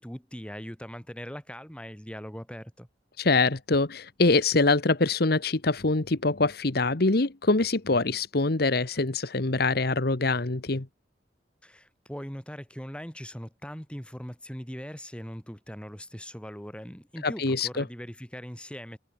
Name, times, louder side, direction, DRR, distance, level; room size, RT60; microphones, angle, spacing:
voice 1, 0.0-2.9 11.6-19.0, equal, 5° left, 7.6 m, -40 dB
voice 2, 3.2-10.9 17.2-17.8, left 3 dB, 60° left, 1.3 m, -24 dB
head